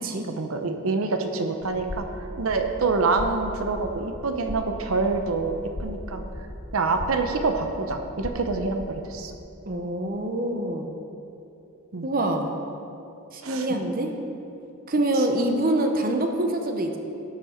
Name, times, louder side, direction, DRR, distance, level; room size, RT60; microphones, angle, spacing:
voice 1, 0.3-6.2 6.7-9.3 11.9-12.1 13.4-13.7 15.2-15.3, right 3 dB, 85° right, 6 dB, 0.8 m, -26 dB
sound 1, 1.6-9.4, left 1 dB, 30° left, 0.7 m, -38 dB
voice 2, 9.7-10.9 12.0-12.5 13.3-14.1 14.9-17.0, right 1 dB, 40° right, 4 dB, 0.8 m, -25 dB
12.0 x 6.6 x 4.4 m, 2.8 s
head